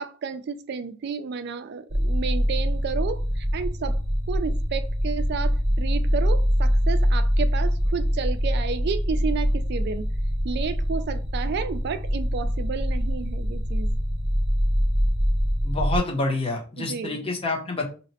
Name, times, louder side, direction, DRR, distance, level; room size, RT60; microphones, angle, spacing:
voice 1, 0.0-4.0 4.3-10.1 10.4-13.9 16.8-17.3, right 5 dB, 55° right, 11 dB, 0.3 m, -31 dB
sound 1, 1.9-16.0, equal, 35° right, 0.8 m, -24 dB
voice 2, 15.6-17.9, left 2 dB, 30° left, 1 dB, 0.8 m, -27 dB
2.8 x 2.1 x 4.0 m, 0.36 s
head